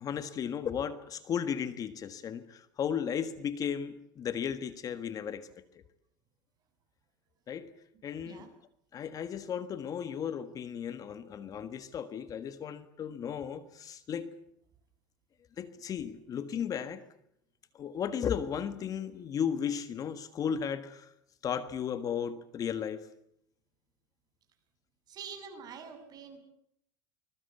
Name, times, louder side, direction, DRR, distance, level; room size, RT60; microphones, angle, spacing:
voice 1, 0.0-5.8 7.5-7.7 8.0-8.5 8.9-14.3 15.6-17.0 17.7-21.1 21.4-23.1, left 8 dB, 35° left, 12 dB, 1.6 m, -35 dB
voice 2, 25.1-26.4, right 6 dB, 40° right, 5 dB, 7.3 m, -45 dB
25.0 x 21.5 x 8.3 m, 0.72 s
supercardioid pair, 125°, 10 cm